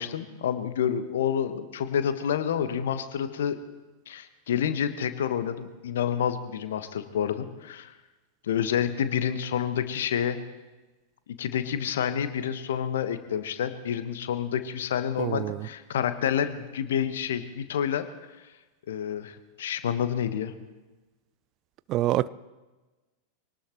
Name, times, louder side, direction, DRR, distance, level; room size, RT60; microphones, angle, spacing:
voice 1, 0.0-3.6 4.1-7.9 8.4-10.4 11.4-18.1 18.9-20.5, left 8 dB, 60° left, 1.1 m, -28 dB
voice 2, 15.2-15.6 21.9-22.3, right 15 dB, 35° right, 0.4 m, -26 dB
24.0 x 18.5 x 3.0 m
figure-of-eight pair, 90°, 0 cm